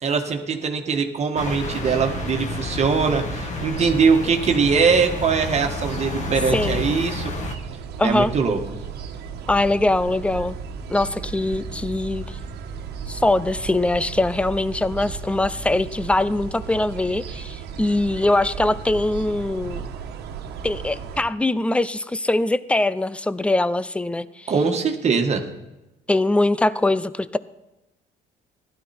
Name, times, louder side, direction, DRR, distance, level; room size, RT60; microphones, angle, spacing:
voice 1, 0.0-7.3 8.0-8.6 24.5-25.4, right 5 dB, 40° right, 4 dB, 1.6 m, -21 dB
sound 1, 1.4-7.6, left 4 dB, 45° left, 1.8 m, -31 dB
sound 2, 1.4-21.2, right 6 dB, 75° right, 1.4 m, -35 dB
voice 2, 6.5-6.8 8.0-8.3 9.5-10.6 10.9-12.4 13.1-19.8 20.6-24.5 26.1-27.4, left 2 dB, 5° left, 16 dB, 0.5 m, -22 dB
15.5 x 12.5 x 4.3 m, 0.97 s
cardioid pair, 110°, 17 cm